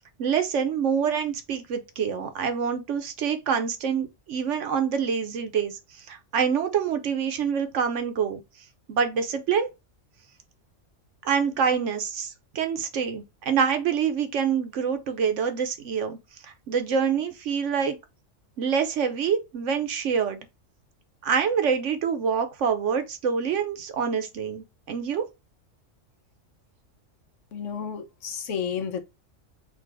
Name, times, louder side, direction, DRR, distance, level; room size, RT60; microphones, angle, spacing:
voice 1, 0.2-8.4 8.9-9.7 11.2-16.2 16.4-18.0 18.6-20.5 21.2-25.3, right 7 dB, 70° right, 1.1 m, -26 dB
voice 2, 27.5-29.0, left 7 dB, 70° left, 1.1 m, -31 dB
4.0 x 2.5 x 4.5 m
omnidirectional pair, 1.3 m